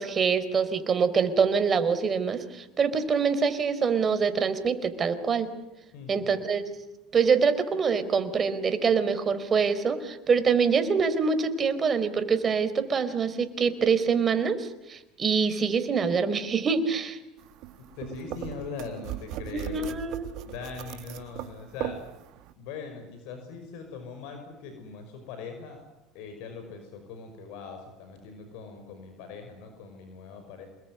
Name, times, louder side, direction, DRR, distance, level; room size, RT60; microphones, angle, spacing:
voice 1, 0.0-5.5 6.1-6.6 7.1-17.2 19.5-20.3, right 5 dB, 35° right, 11 dB, 4.1 m, -25 dB
voice 2, 5.9-6.5 17.8-20.0 20.5-22.0 22.6-25.8 26.1-30.7, left 5 dB, 75° left, 6 dB, 5.8 m, -41 dB
sound 1, 17.4-22.5, right 13 dB, 65° right, 2.1 m, -39 dB
28.0 x 21.5 x 9.7 m, 0.96 s
supercardioid pair, 90°, 0 cm